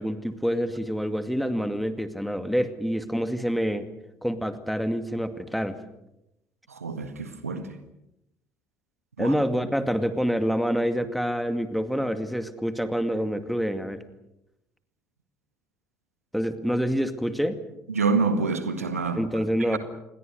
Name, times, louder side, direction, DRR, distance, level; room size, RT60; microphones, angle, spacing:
voice 1, 0.0-3.9 4.2-5.8 9.2-14.0 16.3-17.6 19.2-19.8, equal, ahead, 2.3 m, -27 dB
voice 2, 6.7-7.8 9.2-9.3 17.9-19.2 19.6-19.8, right 4 dB, 80° right, 1.7 m, -27 dB
28.0 x 22.0 x 6.6 m
figure-of-eight pair, 55°, 8 cm